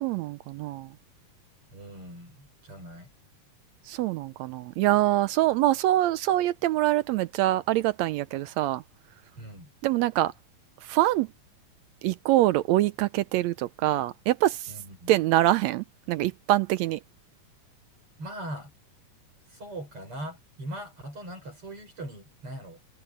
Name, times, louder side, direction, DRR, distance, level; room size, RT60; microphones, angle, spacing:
voice 1, 0.0-0.9 3.9-8.8 9.8-10.3 10.8-11.3 12.0-14.7 15.1-17.0, right 15 dB, 85° right, 1.6 m, -24 dB
voice 2, 1.7-3.1 9.4-9.7 14.7-15.2 18.2-18.7 19.5-22.8, right 1 dB, 40° right, 6.8 m, -40 dB
omnidirectional pair, 3.6 m